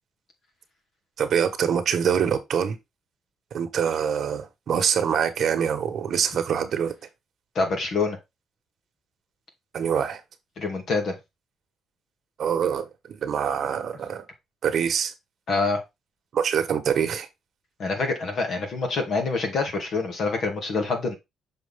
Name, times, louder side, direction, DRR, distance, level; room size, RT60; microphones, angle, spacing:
voice 1, 1.2-2.8 3.5-6.9 9.7-10.2 12.4-14.2 14.6-15.1 16.3-17.3, right 7 dB, 60° right, 1.3 m, -25 dB
voice 2, 7.5-8.2 10.6-11.1 15.5-15.8 17.8-21.1, left 3 dB, 60° left, 2.4 m, -26 dB
6.8 x 4.6 x 3.6 m
cardioid pair, 90°, 0 cm